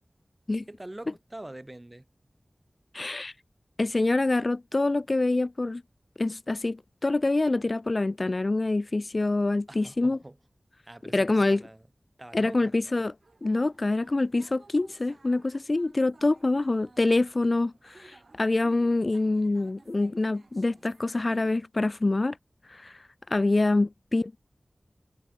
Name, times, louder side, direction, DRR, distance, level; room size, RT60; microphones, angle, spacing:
voice 1, 0.7-2.1 9.7-10.4 10.9-11.9 12.2-12.7, right 1 dB, 25° right, 2.1 m, -44 dB
voice 2, 2.9-3.3 3.8-5.8 6.2-10.2 11.1-11.6 12.3-13.1 13.4-22.4 22.7-23.0 23.3-24.4, left 2 dB, 50° left, 0.3 m, -26 dB
sound 1, 13.2-21.6, right 3 dB, 65° right, 4.7 m, -57 dB
wide cardioid pair, 75°, 0 cm